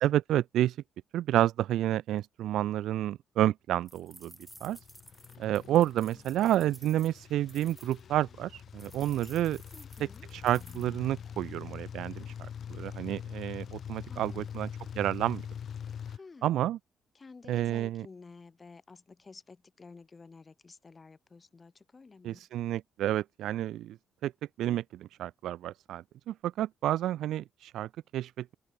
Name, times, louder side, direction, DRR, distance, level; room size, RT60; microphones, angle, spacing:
voice 1, 0.0-0.8 1.1-4.3 4.6-4.8 5.4-9.6 10.3-12.3 12.7-14.7 15.0-15.4 16.4-16.8 17.5-18.0 22.2-24.0 24.2-24.3 24.6-28.5, right 13 dB, 80° right, 0.4 m, -30 dB
sound 1, 3.9-8.0 8.8-10.9, right 1 dB, 5° right, 7.6 m, -54 dB
sound 2, 4.2-16.2, left 8 dB, 55° left, 0.9 m, -44 dB
voice 2, 9.7-10.3 14.1-14.7 15.8-16.6 17.1-22.5, left 4 dB, 30° left, 7.8 m, -52 dB
open air
cardioid pair, 90°, 0 cm